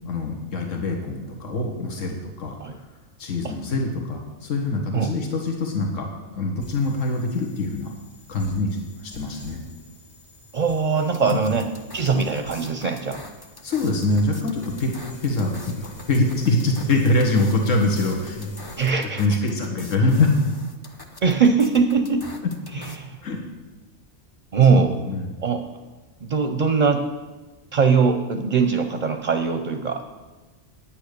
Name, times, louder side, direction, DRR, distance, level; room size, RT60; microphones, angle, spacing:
voice 1, 0.0-2.6 3.2-7.9 8.3-9.6 11.3-11.5 13.6-14.9 15.2-18.6 19.2-20.5 23.2-23.4 24.7-25.3, left 2 dB, 90° left, 1 dB, 1.7 m, -24 dB
sound 1, 6.6-18.9, left 1 dB, 60° left, 2.2 m, -46 dB
voice 2, 10.5-11.7 11.9-13.2 18.8-19.4 21.2-22.3 22.7-23.2 24.5-25.0 25.4-25.6 26.2-27.1 27.7-30.1, right 5 dB, 45° right, 7 dB, 0.6 m, -21 dB
sound 2, 10.9-23.0, left 2 dB, 25° left, 0.7 m, -44 dB
9.0 x 8.8 x 6.7 m, 1.2 s
omnidirectional pair, 1.3 m